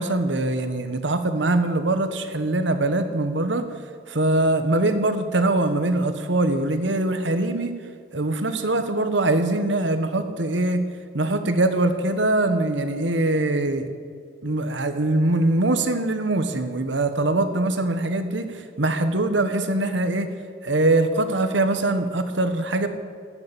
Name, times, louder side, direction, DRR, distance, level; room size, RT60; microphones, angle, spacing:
voice 1, 0.0-3.7 4.1-7.7 8.1-10.8 11.1-13.9 14.4-20.3 20.6-22.9, right 2 dB, 65° right, 9 dB, 1.3 m, -22 dB
13.5 x 9.6 x 8.4 m, 2.1 s
head